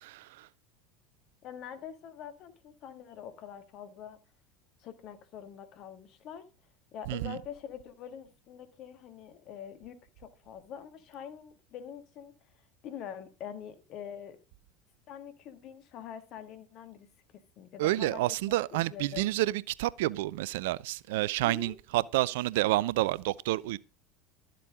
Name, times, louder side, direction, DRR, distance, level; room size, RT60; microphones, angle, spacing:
voice 1, 1.4-4.2 4.8-6.5 6.9-12.3 12.8-14.4 15.1-17.1 17.6-19.4 21.4-21.8, left 8 dB, 50° left, 1.9 m, -45 dB
voice 2, 7.1-7.4 17.8-23.8, right 17 dB, 65° right, 0.5 m, -29 dB
13.0 x 7.6 x 5.0 m
figure-of-eight pair, 75°, 0 cm